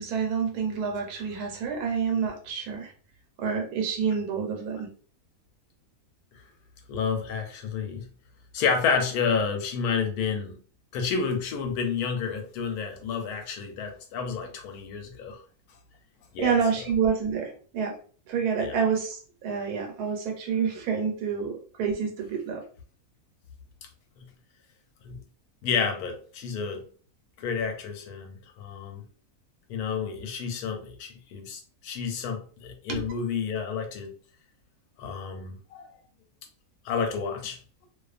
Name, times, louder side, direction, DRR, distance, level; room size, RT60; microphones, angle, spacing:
voice 1, 0.0-2.9 3.4-4.9 16.4-18.0 18.3-22.6 32.9-33.0, right 6 dB, 90° right, 1.2 m, -28 dB
voice 2, 6.9-8.1 8.5-10.6 10.9-15.4 16.3-16.9 18.6-18.8 24.2-24.3 25.0-25.2 25.6-26.9 27.4-29.0 29.7-34.1 35.0-35.9 36.8-37.6, left 6 dB, 90° left, 1.1 m, -30 dB
2.5 x 2.3 x 2.4 m
omnidirectional pair, 1.6 m